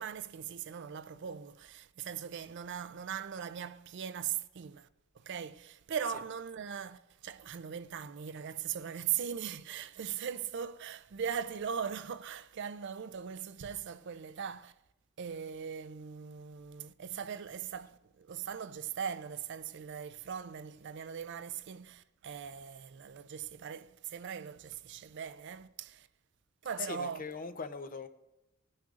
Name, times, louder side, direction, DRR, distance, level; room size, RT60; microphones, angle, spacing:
voice 1, 0.0-4.9 5.1-14.7 15.2-26.1 26.6-27.2, right 8 dB, 60° right, 0.4 m, -40 dB
voice 2, 26.8-28.1, left 5 dB, 40° left, 0.7 m, -40 dB
18.5 x 9.5 x 2.5 m
head